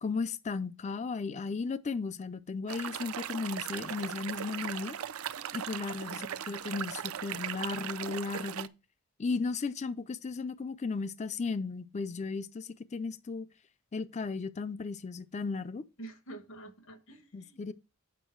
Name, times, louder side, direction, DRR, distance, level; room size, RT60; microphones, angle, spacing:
voice 1, 0.0-5.0 5.5-8.7 9.2-13.5 13.9-15.8 17.3-17.7, left 4 dB, 30° left, 0.4 m, -35 dB
sound 1, 2.7-8.7, right 9 dB, 75° right, 0.5 m, -38 dB
voice 2, 5.7-6.4 16.0-17.7, right 2 dB, 65° left, 1.3 m, -49 dB
8.3 x 5.2 x 4.5 m
head